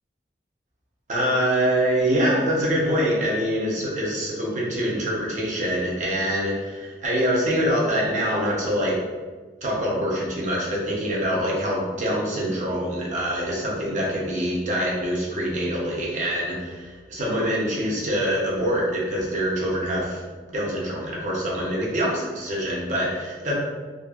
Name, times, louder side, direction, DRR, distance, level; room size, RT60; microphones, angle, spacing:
voice 1, 1.1-9.0 9.6-20.2 20.5-23.5, equal, 45° right, -4 dB, 0.6 m, -25 dB
2.6 x 2.5 x 2.3 m, 1.4 s
head